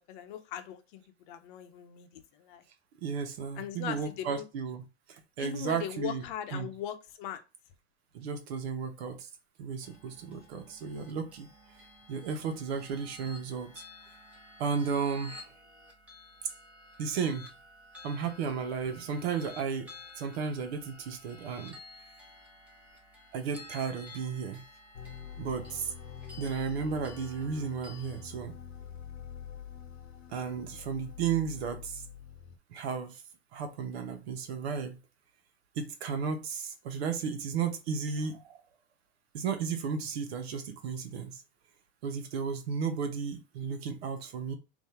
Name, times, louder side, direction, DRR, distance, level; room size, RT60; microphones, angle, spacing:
voice 1, 0.0-2.6 3.6-4.4 5.4-7.4, left 10 dB, 55° left, 0.7 m, -39 dB
voice 2, 3.0-4.8 5.1-6.7 8.1-9.3 9.6-11.5 12.1-13.8 14.6-15.5 17.0-17.5 18.0-19.9 20.2-21.8 23.3-24.6 25.4-25.9 26.4-28.5 30.3-32.0 32.7-33.2 33.5-35.0 35.8-38.6 39.3-41.4 42.0-44.5, right 6 dB, 75° right, 1.1 m, -34 dB
sound 1, 9.8-28.2, left 2 dB, 5° right, 1.0 m, -52 dB
sound 2, 24.9-32.6, left 8 dB, 85° left, 0.9 m, -46 dB
3.7 x 2.7 x 4.3 m
supercardioid pair, 150°, 31 cm